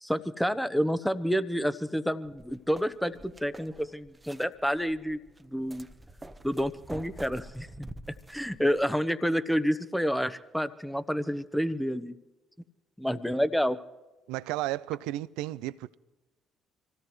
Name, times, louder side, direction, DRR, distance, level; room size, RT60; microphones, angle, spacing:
voice 1, 0.0-5.2 5.5-5.9 6.4-7.9 8.3-12.1 13.0-13.8, equal, 5° left, 1.1 m, -29 dB
sound 1, 2.3-8.9, right 1 dB, 20° right, 1.1 m, -47 dB
voice 2, 14.3-16.0, right 16 dB, 70° right, 0.4 m, -33 dB
26.0 x 16.5 x 3.2 m
hypercardioid pair, 50°, 0 cm